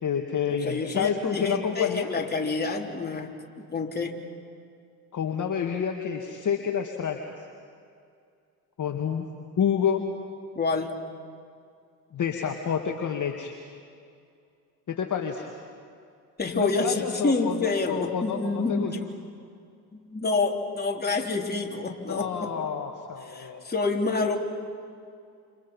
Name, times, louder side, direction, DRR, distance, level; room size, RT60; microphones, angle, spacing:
voice 1, 0.0-2.1 5.1-7.5 8.8-9.3 9.6-10.0 12.1-13.6 14.9-15.5 16.5-18.9 22.1-23.6, left 7 dB, 40° left, 2 dB, 2.3 m, -29 dB
voice 2, 0.6-4.2 10.5-10.9 16.4-19.0 19.9-22.5 23.2-24.4, left 3 dB, 20° left, 0 dB, 3.9 m, -28 dB
29.5 x 28.5 x 5.6 m, 2.4 s
hypercardioid pair, 65°, 48 cm